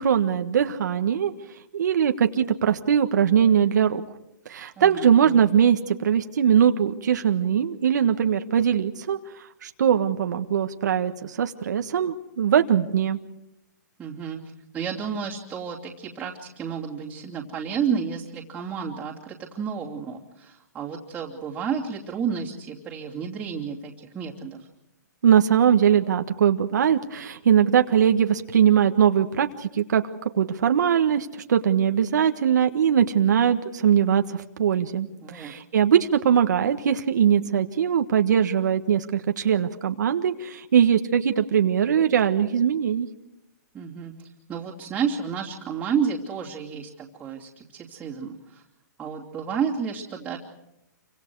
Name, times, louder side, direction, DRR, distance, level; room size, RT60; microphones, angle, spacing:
voice 1, 0.0-1.3 1.7-4.0 4.5-9.2 9.6-13.2 25.2-30.0 30.3-35.1 35.3-43.1, right 8 dB, 70° right, 6 dB, 1.5 m, -21 dB
voice 2, 4.8-5.4 14.0-14.4 14.7-24.7 35.2-35.5 43.7-44.1 44.5-48.6 49.0-50.4, right 7 dB, 10° right, -6 dB, 2.8 m, -31 dB
28.0 x 25.0 x 4.8 m, 0.85 s
hypercardioid pair, 155°, 10 cm